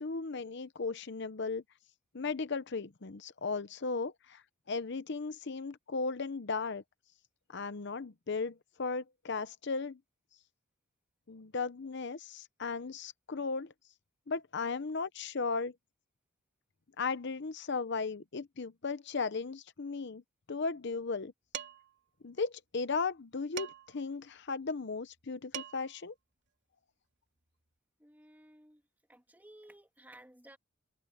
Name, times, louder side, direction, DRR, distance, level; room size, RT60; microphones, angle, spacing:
voice 1, 0.0-1.6 2.1-4.4 4.7-6.8 7.5-10.0 11.3-13.7 14.3-15.7 17.0-20.2 20.5-21.3 22.2-26.1, left 4 dB, 60° left, 0.8 m, -36 dB
Dishes pots and pans, 21.5-22.0 23.6-24.0 25.2-25.3 25.5-26.0, right 8 dB, 60° right, 3.3 m, -42 dB
voice 2, 28.0-28.8 29.1-30.6, right 1 dB, 10° right, 2.3 m, -56 dB
head